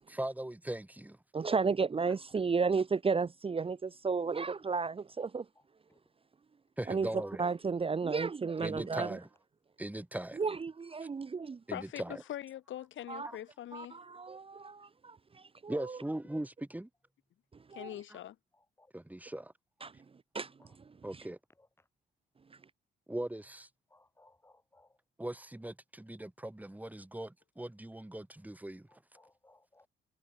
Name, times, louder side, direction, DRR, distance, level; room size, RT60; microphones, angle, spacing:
voice 1, 0.1-1.2 6.8-7.4 8.6-9.3 9.8-10.4 11.7-12.2 13.2-13.4 15.7-16.9 18.1-18.2 18.9-19.5 21.0-21.4 23.1-23.7 25.2-28.9, right 1 dB, 10° right, 2.7 m, -39 dB
voice 2, 1.3-5.5 6.9-9.2 10.3-11.6 13.1-13.3 13.7-16.0 17.7-17.9 19.8-19.9 20.3-20.5 21.1-21.2, right 5 dB, 30° right, 0.9 m, -33 dB
voice 3, 11.7-14.0 17.7-18.4, left 12 dB, 75° left, 2.4 m, -42 dB
voice 4, 23.9-25.0 28.9-29.9, left 2 dB, 10° left, 2.2 m, -65 dB
cardioid pair, 90°, 20 cm